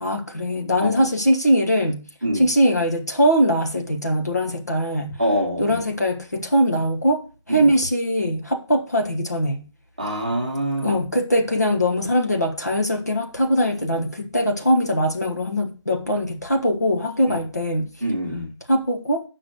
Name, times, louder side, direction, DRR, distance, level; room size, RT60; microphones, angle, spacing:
voice 1, 0.0-2.1 2.3-5.2 5.6-7.2 7.5-9.6 10.8-17.9 18.7-19.2, equal, 35° left, 3 dB, 1.3 m, -21 dB
voice 2, 5.2-5.8 7.5-7.7 10.0-11.0 17.3-17.4 18.0-18.5, equal, 15° right, -2 dB, 1.4 m, -25 dB
8.6 x 6.0 x 6.4 m, 0.35 s
figure-of-eight pair, 175°, 15 cm